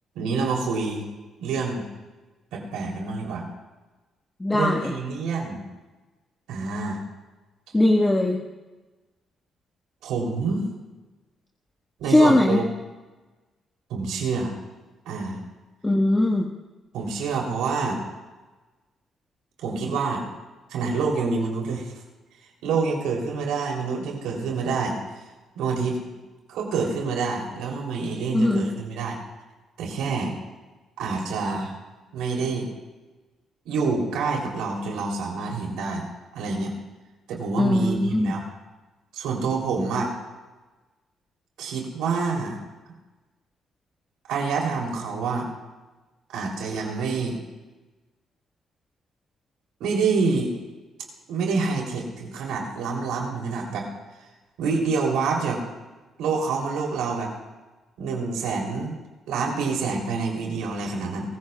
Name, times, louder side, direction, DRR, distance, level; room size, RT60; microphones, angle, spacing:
voice 1, 0.1-1.0 1.4-1.9 2.5-3.4 4.5-5.7 6.5-7.0 10.0-10.7 12.0-12.6 13.9-14.5 15.0-15.4 16.9-18.0 19.6-20.2 20.7-21.9 22.6-25.0 25.5-26.0 26.5-29.2 29.8-30.3 31.0-31.7 32.1-32.7 33.6-36.0 36.3-36.7 37.3-38.4 39.1-40.1 41.6-42.6 44.3-45.5 46.3-47.4 49.8-50.5 51.3-53.9 54.6-55.6 56.2-57.3 58.0-58.9 59.3-61.4, right 4 dB, 80° right, 0 dB, 3.3 m, -27 dB
voice 2, 4.4-4.9 7.7-8.4 12.1-12.6 15.8-16.5 28.3-28.7 37.6-38.3, left 1 dB, 20° left, 0 dB, 1.6 m, -20 dB
23.5 x 15.0 x 2.4 m, 1.2 s
supercardioid pair, 60°, 0 cm